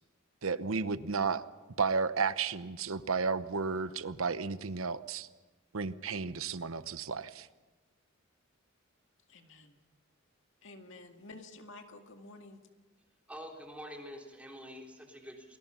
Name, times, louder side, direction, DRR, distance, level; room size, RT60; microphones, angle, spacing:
voice 1, 0.4-1.4 1.8-5.3 5.7-7.5, right 5 dB, 80° right, 14 dB, 0.9 m, -33 dB
voice 2, 9.3-9.7 10.6-12.6, left 2 dB, 65° left, 5 dB, 2.1 m, -51 dB
voice 3, 13.3-15.6, equal, 5° right, 0 dB, 3.6 m, -46 dB
28.5 x 20.5 x 5.7 m, 1.2 s
head